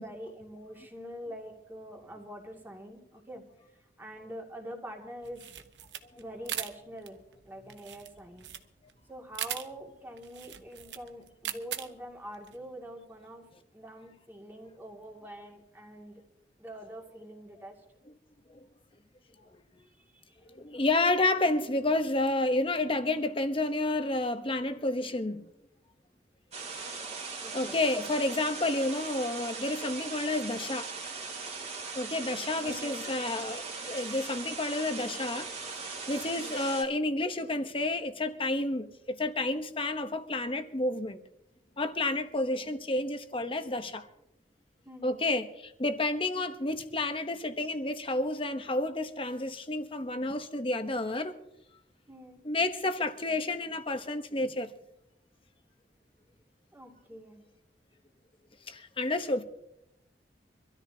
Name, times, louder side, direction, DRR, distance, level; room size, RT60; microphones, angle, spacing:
voice 1, 0.0-3.4 4.0-5.4 6.2-7.2 7.4-8.5 9.1-13.5 13.7-16.2 16.6-17.8 27.4-27.8 32.6-33.1 35.9-36.6 44.9-45.3 52.1-52.4 56.7-57.5, equal, 10° right, 2.4 m, -45 dB
sound 1, 5.2-12.6, right 10 dB, 85° right, 0.9 m, -40 dB
voice 2, 20.5-25.5 27.5-30.9 31.9-35.7 36.1-41.2 41.8-44.1 45.0-51.3 52.4-54.7 58.7-59.4, left 2 dB, 30° left, 1.0 m, -30 dB
sound 2, 26.5-36.8, right 4 dB, 40° right, 2.4 m, -39 dB
25.0 x 13.5 x 2.9 m
head